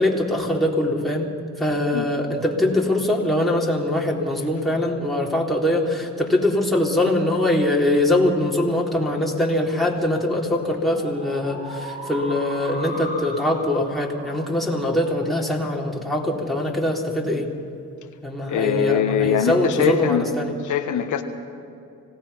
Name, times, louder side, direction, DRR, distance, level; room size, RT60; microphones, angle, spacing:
voice 1, 0.0-17.5 18.2-20.5, left 1 dB, ahead, -3 dB, 3.9 m, -22 dB
sound 1, 8.3-17.2, equal, 25° right, 6.3 m, -39 dB
voice 2, 18.5-20.2 20.7-21.2, left 8 dB, 75° left, 5 dB, 1.5 m, -22 dB
26.0 x 18.0 x 5.8 m, 2.6 s
cardioid pair, 90°, 30 cm